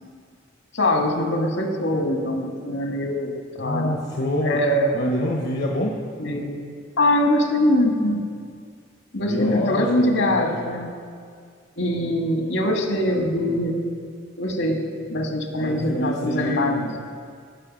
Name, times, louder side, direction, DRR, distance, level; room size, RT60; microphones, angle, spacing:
voice 1, 0.7-3.3 3.6-3.9 4.4-4.9 6.2-6.6 7.0-8.2 9.1-10.9 11.8-13.8 14.4-14.8 15.1-16.9, left 1 dB, 75° left, 2 dB, 1.6 m, -22 dB
voice 2, 3.6-4.6 4.9-6.0 9.3-10.7 15.6-17.0, equal, 55° left, -1 dB, 1.0 m, -27 dB
14.5 x 6.7 x 5.2 m, 2.1 s
head